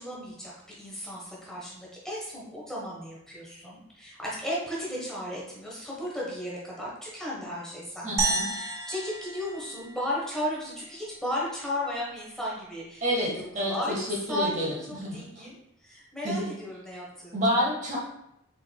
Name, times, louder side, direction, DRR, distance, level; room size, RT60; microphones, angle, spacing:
voice 1, 0.0-17.4, left 1 dB, 5° left, -6 dB, 1.1 m, -35 dB
voice 2, 8.0-8.5 13.0-15.5 16.2-16.4 17.3-18.0, equal, 35° right, -3 dB, 1.0 m, -29 dB
sound 1, 8.2-10.6, right 3 dB, 15° right, 0.5 m, -31 dB
4.8 x 4.4 x 2.2 m, 0.80 s
head